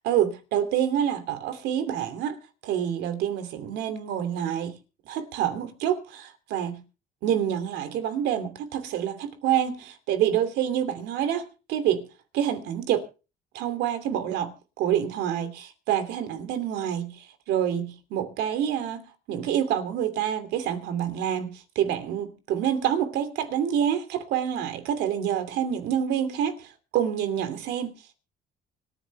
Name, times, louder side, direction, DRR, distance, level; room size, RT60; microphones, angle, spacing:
voice 1, 0.1-2.4 2.6-4.7 5.1-6.8 7.2-12.1 12.3-13.0 13.5-14.5 14.8-19.0 19.3-27.9, right 9 dB, 85° right, 2.8 m, -27 dB
25.5 x 9.9 x 3.4 m
cardioid pair, 110°, 17 cm